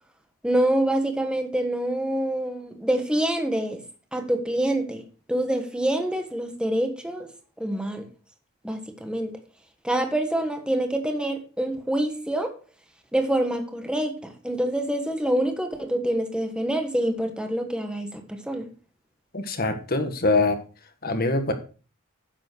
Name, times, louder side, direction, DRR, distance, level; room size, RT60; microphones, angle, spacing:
voice 1, 0.4-3.8 4.1-7.3 7.6-8.1 8.6-9.3 9.8-12.6 13.1-18.7, right 1 dB, 5° right, 5 dB, 1.4 m, -26 dB
voice 2, 19.3-20.6 21.0-21.5, left 2 dB, 45° left, 7 dB, 1.6 m, -23 dB
10.5 x 7.5 x 4.6 m, 0.36 s
head